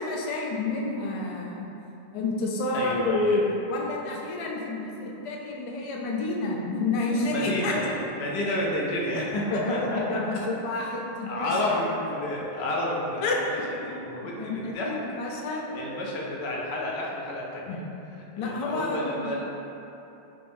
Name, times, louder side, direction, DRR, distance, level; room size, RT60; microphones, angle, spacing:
voice 1, 0.0-1.7 2.1-3.4 3.7-7.8 9.5-11.8 13.2-13.6 14.4-15.8 17.7-17.8 18.4-19.3, left 2 dB, 55° left, -2 dB, 0.3 m, -29 dB
voice 2, 2.7-3.4 7.1-10.2 10.8-10.9 11.2-13.6 13.8-14.9 15.5-17.8 18.4-19.4, left 1 dB, 90° left, -3 dB, 0.9 m, -30 dB
3.4 x 2.6 x 3.4 m, 2.9 s
omnidirectional pair, 1.1 m